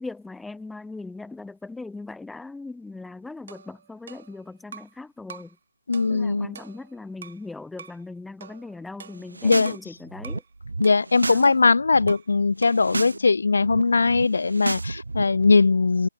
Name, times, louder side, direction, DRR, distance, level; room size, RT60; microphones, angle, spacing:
voice 1, 0.0-5.6 6.1-10.4 11.3-11.5, left 3 dB, 5° left, 0.7 m, -39 dB
sound 1, 3.5-5.0 5.3-5.6 5.9-7.5 7.8-8.0 8.4-9.9 10.2-10.5 10.8-12.4 12.6-12.9, right 7 dB, 50° right, 2.8 m, -46 dB
voice 2, 5.9-6.5 9.4-9.8 10.8-16.1, left 4 dB, 75° left, 0.4 m, -20 dB
sound 2, 9.2-9.8 10.0-11.5 11.7-12.1 12.6-13.2 13.4-15.5, right 3 dB, 90° right, 0.4 m, -32 dB
figure-of-eight pair, 155°, 0 cm